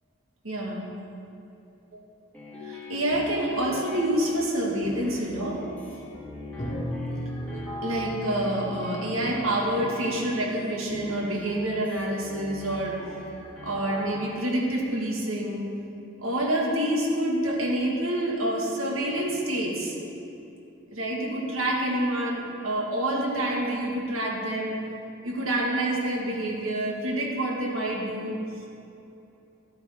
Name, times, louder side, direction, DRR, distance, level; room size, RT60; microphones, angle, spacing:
voice 1, 0.4-0.9 1.9-2.0 2.6-5.6 7.5-13.0 13.6-15.6 16.2-19.9 20.9-24.8 25.2-28.4, right 1 dB, 80° right, -2 dB, 1.7 m, -27 dB
sound 1, 2.3-14.5, left 3 dB, 5° left, 1.4 m, -41 dB
sound 2, 6.6-11.1, equal, 35° left, 1.3 m, -36 dB
12.0 x 8.3 x 3.5 m, 2.8 s
head